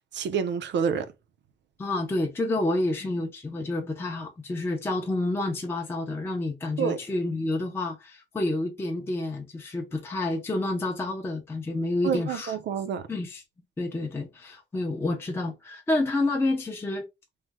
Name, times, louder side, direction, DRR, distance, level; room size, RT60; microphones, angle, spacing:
voice 1, 0.1-1.1 6.8-7.0 12.0-13.1, right 7 dB, 65° right, 0.5 m, -28 dB
voice 2, 1.8-12.5 13.1-13.4 13.8-17.1, left 2 dB, 10° left, 0.4 m, -29 dB
3.1 x 2.0 x 3.3 m
wide cardioid pair, 160°, 20 cm